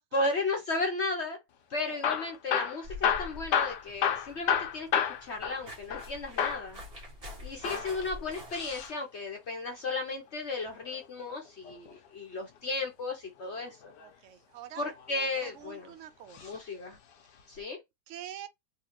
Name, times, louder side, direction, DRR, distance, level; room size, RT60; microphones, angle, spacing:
voice 1, 0.1-1.4 1.7-6.8 7.4-13.9 14.8-15.9 16.4-17.0 17.5-17.8, left 2 dB, 50° left, 0.9 m, -34 dB
Hammer / Drill, 1.9-6.1 6.4-6.7 7.5-8.9 10.7-11.9 13.6-14.1 14.8-15.6 16.3-16.6 16.9-17.0 17.6-17.7, left 8 dB, 80° left, 1.4 m, -31 dB
sound 1, 2.8-8.9, left 1 dB, 35° right, 1.5 m, -46 dB
voice 2, 7.3-7.8 14.0-14.9 15.4-16.6 18.1-18.5, right 11 dB, 70° right, 0.7 m, -46 dB
3.7 x 2.9 x 3.0 m
omnidirectional pair, 1.8 m